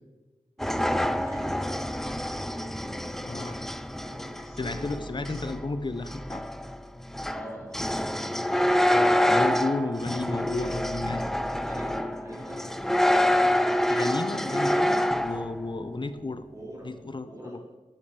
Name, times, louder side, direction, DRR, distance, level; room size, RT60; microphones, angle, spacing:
sound 1, 0.6-15.6, left 1 dB, 5° left, 0.3 m, -27 dB
voice 1, 0.6-3.7 4.0-4.9 5.2-5.4 7.3-8.8 11.3-13.0 13.3-14.0 16.5-17.6, equal, 25° right, -3 dB, 3.1 m, -45 dB
voice 2, 3.2-3.6 4.6-6.5 9.3-11.3 13.9-16.4 16.8-17.6, left 3 dB, 35° left, 10 dB, 0.6 m, -32 dB
9.2 x 7.3 x 4.8 m, 1.2 s
wide cardioid pair, 85°, 13 cm